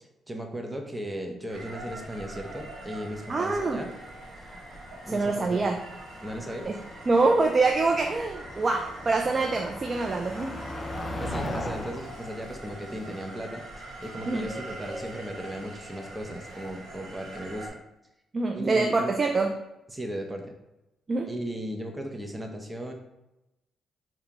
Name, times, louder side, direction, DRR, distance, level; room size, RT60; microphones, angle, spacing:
voice 1, 0.3-3.9 5.1-5.6 6.2-6.7 10.3-10.7 11.2-17.8 18.5-19.2 19.9-20.5 21.3-22.9, equal, 15° right, 3 dB, 0.8 m, -36 dB
sound 1, 1.5-17.7, right 1 dB, 80° right, 0.9 m, -43 dB
voice 2, 3.3-3.8 5.1-5.8 6.7-6.8 7.1-10.6 14.3-14.5 18.3-19.5 21.1-21.3, right 3 dB, 40° right, 3 dB, 0.4 m, -25 dB
Motor vehicle (road), 3.7-13.9, left 1 dB, 25° left, 0.5 m, -40 dB
4.9 x 2.3 x 2.9 m, 0.93 s
supercardioid pair, 60°, 0 cm